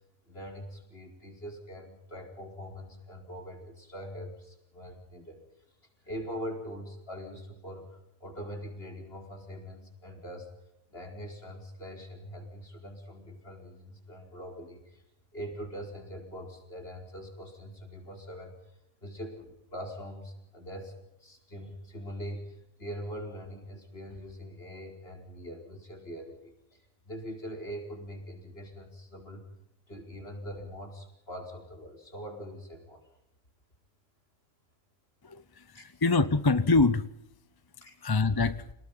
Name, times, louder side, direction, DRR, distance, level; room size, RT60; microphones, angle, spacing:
voice 1, 0.3-5.4 6.0-10.5 10.9-15.0 15.3-18.5 19.0-20.9 21.2-26.8 27.1-29.4 29.9-33.0 35.7-35.8 37.8-37.9, equal, 45° left, 3 dB, 5.2 m, -42 dB
voice 2, 35.2-37.1 38.0-38.7, left 3 dB, 25° left, 14 dB, 0.6 m, -25 dB
29.5 x 19.5 x 5.6 m, 0.82 s
omnidirectional pair, 1.4 m